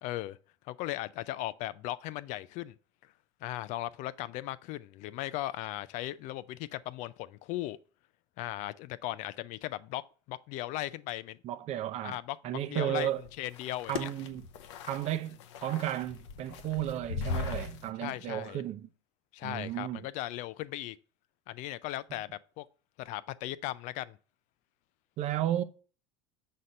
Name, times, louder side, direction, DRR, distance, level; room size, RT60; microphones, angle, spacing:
voice 1, 0.0-0.4 0.7-2.7 3.4-7.8 8.4-10.0 10.3-11.4 12.0-13.1 13.4-14.1 18.0-18.6 19.3-21.0 21.5-22.7 23.0-24.2, left 15 dB, 55° left, 0.4 m, -37 dB
voice 2, 11.4-12.2 12.4-13.2 13.9-14.5 14.9-15.4 15.6-18.9 19.4-20.0 25.2-25.6, right 12 dB, 45° right, 0.6 m, -33 dB
sound 1, 13.0-17.9, left 5 dB, 80° left, 0.7 m, -39 dB
6.3 x 4.2 x 5.3 m
supercardioid pair, 105°, 15 cm